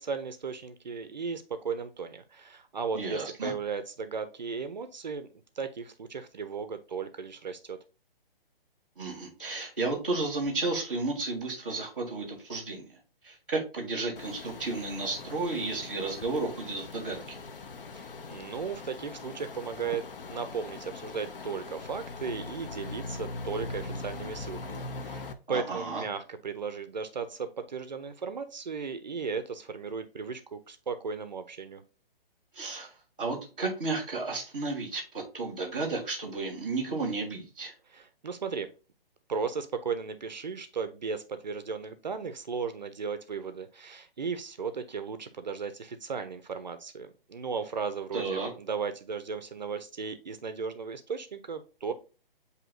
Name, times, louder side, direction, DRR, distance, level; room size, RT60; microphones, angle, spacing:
voice 1, 0.0-5.3 5.6-7.8 17.9-31.8 37.9-38.7 39.3-51.9, right 5 dB, 50° right, 10 dB, 0.4 m, -36 dB
voice 2, 2.9-3.5 9.0-13.0 13.2-17.4 25.5-26.0 32.5-32.9 33.2-37.7 48.1-48.5, right 3 dB, 10° left, -11 dB, 0.5 m, -33 dB
sound 1, 14.2-25.3, left 3 dB, 65° left, 0.7 m, -41 dB
7.6 x 2.7 x 2.5 m, 0.33 s
hypercardioid pair, 175°, 30 cm